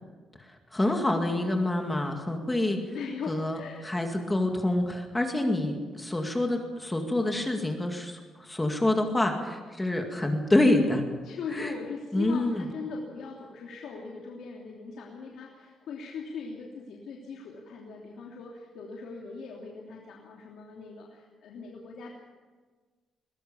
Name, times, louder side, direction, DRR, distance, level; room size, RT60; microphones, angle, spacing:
voice 1, 0.4-2.8 3.3-3.6 3.8-11.0 11.5-11.7 12.1-12.7, left 1 dB, 10° left, 3 dB, 2.1 m, -27 dB
voice 2, 2.9-4.2 11.2-22.1, left 5 dB, 70° left, -2 dB, 3.0 m, -40 dB
22.0 x 19.5 x 7.0 m, 1.4 s
cardioid pair, 165°, 0 cm